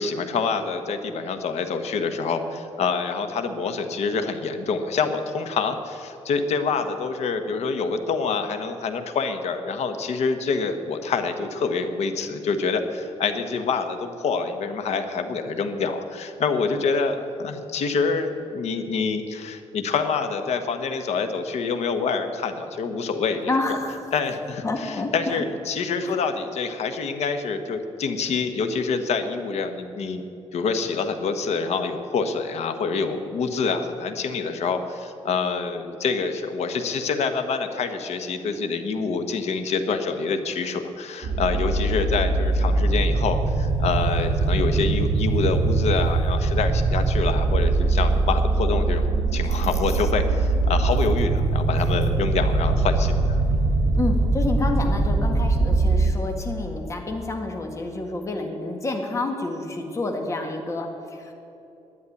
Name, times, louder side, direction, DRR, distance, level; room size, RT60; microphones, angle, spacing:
voice 1, 0.0-23.5 24.1-30.3 30.5-53.4, left 5 dB, 75° left, 7 dB, 1.3 m, -26 dB
voice 2, 23.4-24.1 24.6-25.5 26.0-26.2 49.7-49.8 54.0-61.3, left 2 dB, 25° left, 2 dB, 1.8 m, -29 dB
sound 1, 41.2-56.1, right 3 dB, 80° right, 1.5 m, -22 dB
11.0 x 9.4 x 9.8 m, 2.8 s
wide cardioid pair, 140°, 11 cm